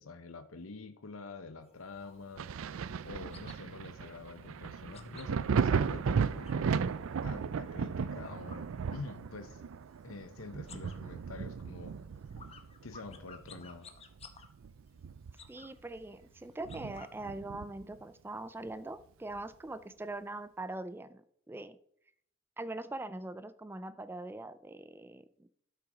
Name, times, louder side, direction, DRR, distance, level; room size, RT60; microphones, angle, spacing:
voice 1, 0.0-2.5 3.0-6.8 7.2-9.6 10.0-11.9 12.8-13.9, left 3 dB, 85° left, 9 dB, 0.9 m, -46 dB
sound 1, 1.6-6.9 7.3-9.4 9.7-10.2 10.5-17.4, left 5 dB, 30° left, 0.9 m, -57 dB
Thunder, 2.4-13.7 14.1-15.6 16.0-16.1 16.6-17.9 19.4-19.5, right 6 dB, 80° right, 0.4 m, -35 dB
voice 2, 15.5-21.8 22.6-25.5, right 2 dB, 10° right, 13 dB, 0.3 m, -42 dB
12.0 x 5.7 x 5.1 m, 0.72 s
head